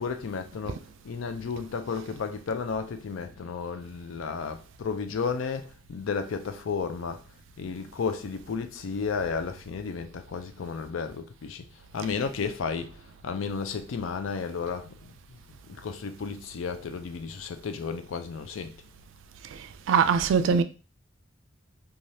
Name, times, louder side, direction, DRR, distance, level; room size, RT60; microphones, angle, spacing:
voice 1, 0.0-7.2 7.6-11.6 11.9-13.0 13.2-18.8, left 5 dB, 80° left, 0.4 m, -33 dB
voice 2, 19.9-20.6, right 6 dB, 75° right, 0.3 m, -21 dB
3.1 x 2.3 x 2.7 m
head